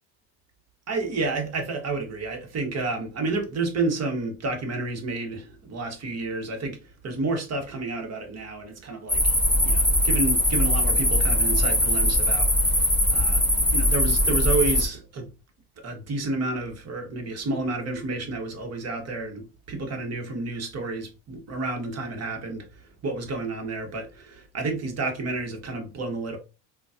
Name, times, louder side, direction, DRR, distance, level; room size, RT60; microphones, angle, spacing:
voice 1, 0.9-9.4 9.6-12.8 13.1-13.4 13.7-15.3 15.8-22.7 23.0-26.4, right 3 dB, 35° right, 1.1 m, -30 dB
sound 1, 9.1-14.9, left 1 dB, 5° left, 1.6 m, -21 dB
3.8 x 2.3 x 2.5 m
supercardioid pair, 85°, 44 cm